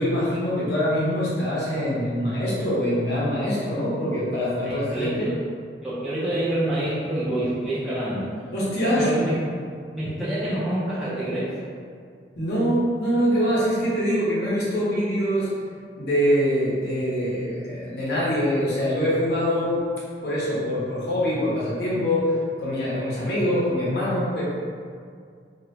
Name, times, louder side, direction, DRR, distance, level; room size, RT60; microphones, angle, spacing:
voice 1, 0.0-5.3 8.5-9.1 12.4-15.5 16.0-19.8 20.2-22.3 22.6-24.4, equal, 60° left, -8 dB, 0.7 m, -24 dB
voice 2, 4.6-5.3 5.8-8.3 9.0-9.4 9.9-11.6, right 1 dB, ahead, -11 dB, 0.3 m, -27 dB
2.3 x 2.0 x 3.0 m, 2.2 s
head